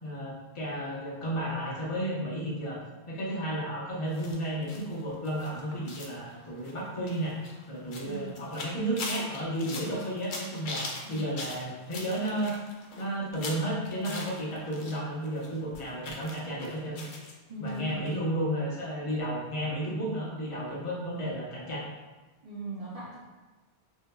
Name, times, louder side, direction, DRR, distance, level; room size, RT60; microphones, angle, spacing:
voice 1, 0.0-2.8 3.1-7.4 7.7-12.6 13.0-17.0 17.6-21.9, right 1 dB, 30° left, -7 dB, 0.9 m, -33 dB
sound 1, 4.1-15.0 15.2-17.3 17.7-17.8 18.1-18.2, left 2 dB, 60° left, 0.6 m, -41 dB
voice 2, 17.5-18.0 22.4-23.2, right 2 dB, 40° right, -8 dB, 0.6 m, -38 dB
4.3 x 2.7 x 2.2 m, 1.2 s
omnidirectional pair, 1.1 m